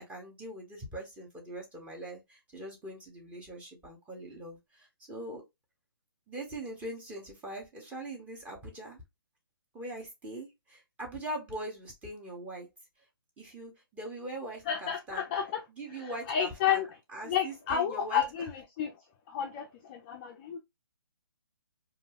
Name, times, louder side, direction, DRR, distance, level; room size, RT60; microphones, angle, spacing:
voice 1, 0.0-5.4 6.3-9.0 9.7-12.7 13.4-15.3 15.8-18.2, right 1 dB, 10° right, 0.8 m, -42 dB
voice 2, 14.7-15.6 16.0-16.9 17.3-18.5 18.8-18.9 19.3-20.6, left 9 dB, 25° left, 0.4 m, -31 dB
2.3 x 2.2 x 3.3 m
hypercardioid pair, 145°, 13 cm